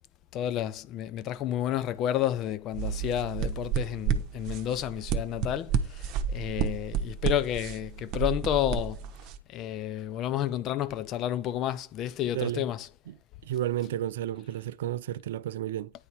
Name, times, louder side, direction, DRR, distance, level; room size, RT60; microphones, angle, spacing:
voice 1, 0.3-9.1 9.5-12.9, left 12 dB, 35° left, 0.6 m, -31 dB
sound 1, 2.7-9.4, right 7 dB, 40° right, 1.1 m, -31 dB
voice 2, 12.3-12.6 13.4-15.9, right 12 dB, 55° right, 0.4 m, -32 dB
9.7 x 4.0 x 4.7 m
figure-of-eight pair, 90°, 0 cm